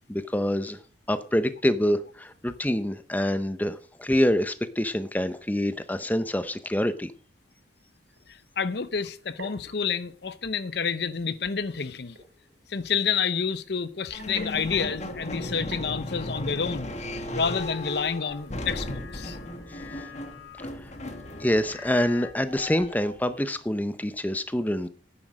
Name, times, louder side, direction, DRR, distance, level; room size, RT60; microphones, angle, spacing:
voice 1, 0.1-0.8 1.1-7.1 21.4-24.9, left 1 dB, 10° left, 0.7 m, -26 dB
sound 1, 7.8-22.7, right 2 dB, 85° right, 4.8 m, -51 dB
voice 2, 8.3-12.2 12.7-16.9 17.3-19.4, left 6 dB, 60° left, 0.7 m, -29 dB
sound 2, 14.1-23.2, left 1 dB, 35° left, 1.4 m, -36 dB
sound 3, 17.4-22.3, left 7 dB, 90° left, 2.9 m, -47 dB
10.5 x 9.7 x 6.2 m
head